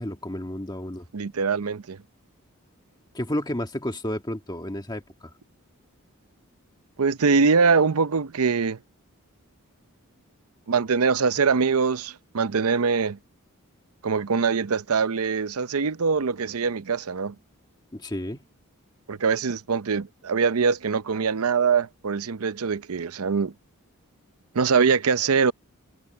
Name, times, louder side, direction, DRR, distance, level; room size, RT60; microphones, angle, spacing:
voice 1, 0.0-1.1 3.1-5.3 17.9-18.5, left 1 dB, 20° left, 1.7 m, -31 dB
voice 2, 1.1-2.0 7.0-8.8 10.7-13.2 14.0-17.3 19.1-23.5 24.5-25.5, right 5 dB, 75° right, 0.7 m, -23 dB
head